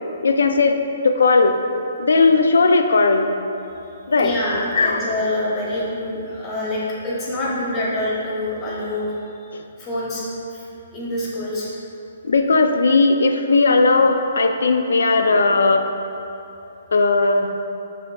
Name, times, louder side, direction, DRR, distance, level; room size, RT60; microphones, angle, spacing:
voice 1, 0.2-1.6 2.0-3.3 4.1-4.3 4.7-5.0 9.5-9.6 12.2-15.9 16.9-17.5, left 3 dB, 90° left, 6 dB, 0.3 m, -17 dB
voice 2, 4.2-9.1 9.8-10.2 10.5-10.6 10.9-11.7, left 1 dB, 20° left, -7 dB, 0.9 m, -26 dB
5.7 x 3.6 x 2.3 m, 2.8 s
hypercardioid pair, 160°, 0 cm